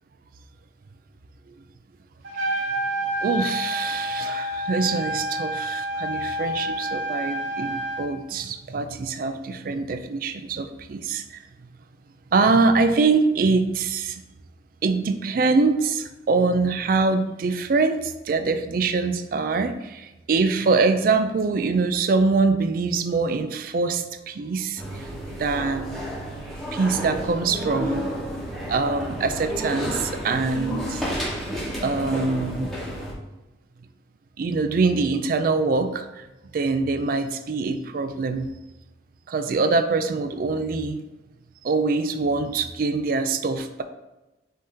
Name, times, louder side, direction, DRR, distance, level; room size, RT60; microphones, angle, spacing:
Trumpet, 2.2-8.0, equal, 80° right, 1.2 m, -28 dB
voice 1, 2.4-2.7 3.2-11.4 12.3-14.2 14.8-25.0 25.4-26.0 26.7-28.1 28.7-31.0 31.8-32.7 34.4-36.3 36.5-38.5 39.3-41.0 41.6-43.8, right 4 dB, 50° right, 8 dB, 0.3 m, -24 dB
sound 1, 24.8-33.1, equal, ahead, 1.0 m, -31 dB
5.4 x 2.7 x 3.6 m, 1.0 s
head